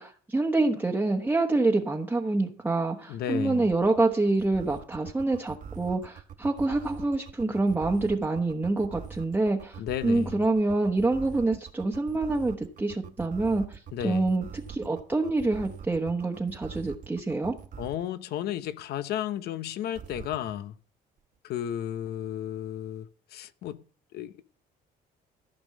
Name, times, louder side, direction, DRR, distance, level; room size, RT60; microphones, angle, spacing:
voice 1, 0.0-17.5, right 2 dB, 10° right, 1.1 m, -26 dB
voice 2, 3.1-3.7 9.8-10.4 13.9-14.3 17.8-20.7 21.4-23.8 24.1-24.4, left 11 dB, 70° left, 0.8 m, -33 dB
sound 1, 3.7-18.1 19.9-20.5, right 7 dB, 50° right, 1.3 m, -43 dB
15.0 x 5.3 x 7.5 m
cardioid pair, 110°, 17 cm